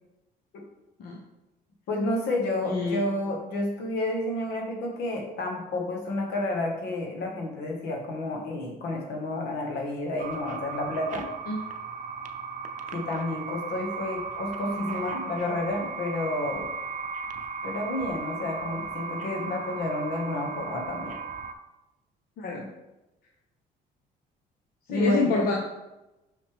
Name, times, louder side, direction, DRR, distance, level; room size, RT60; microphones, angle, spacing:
voice 1, 1.9-11.3 12.9-16.6 17.6-21.2 24.9-25.3, left 1 dB, 80° left, 1 dB, 1.6 m, -30 dB
voice 2, 2.6-3.0 11.5-11.6 22.4-22.6 24.9-25.5, left 4 dB, 60° left, 0 dB, 0.9 m, -26 dB
sound 1, 10.2-21.5, right 4 dB, 50° right, 0.6 m, -36 dB
5.8 x 5.8 x 3.4 m, 0.97 s
cardioid pair, 110°, 17 cm